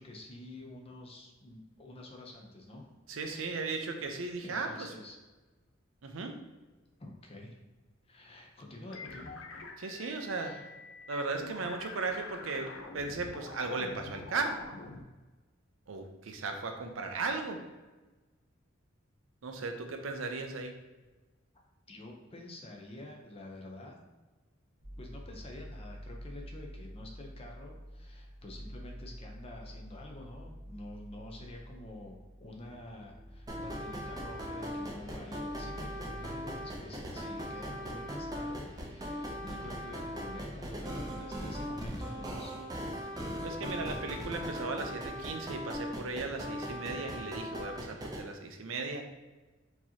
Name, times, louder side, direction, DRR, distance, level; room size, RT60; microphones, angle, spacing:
voice 1, 0.0-2.9 3.3-3.7 4.0-4.1 4.4-5.2 7.0-7.6 8.0-9.4 10.4-10.7 21.9-24.0 25.0-42.5, left 1 dB, 30° left, 0 dB, 0.6 m, -48 dB
voice 2, 3.1-4.9 6.0-6.4 9.8-10.6 11.1-14.6 15.9-17.6 19.4-20.7 39.5-39.8 43.4-49.1, right 3 dB, 75° right, 5 dB, 0.5 m, -36 dB
sound 1, 8.9-15.0, left 3 dB, 85° left, 0.6 m, -46 dB
sound 2, 24.8-42.8, equal, 60° left, 1.0 m, -49 dB
sound 3, 33.5-48.2, equal, 20° right, 0.5 m, -39 dB
4.5 x 2.9 x 2.8 m, 1.2 s
head